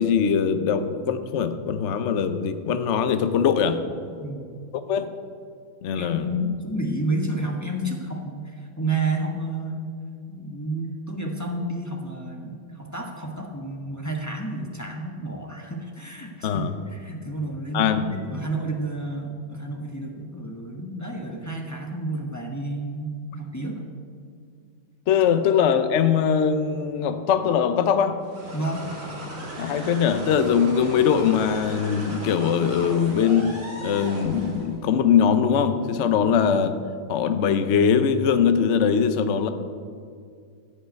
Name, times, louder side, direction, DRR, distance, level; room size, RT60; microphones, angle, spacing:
voice 1, 0.0-3.8 4.7-5.1 5.8-6.3 16.4-16.7 17.7-18.0 25.1-28.2 29.6-36.7 37.1-39.5, left 7 dB, 85° left, 9 dB, 0.6 m, -21 dB
voice 2, 5.9-9.8 10.3-23.8 25.3-25.5 28.5-28.8 36.2-36.3, right 2 dB, 10° left, 0 dB, 0.9 m, -30 dB
sound 1, 28.2-34.8, right 1 dB, 60° right, 4.1 m, -37 dB
14.5 x 5.6 x 9.3 m, 2.2 s
omnidirectional pair, 2.3 m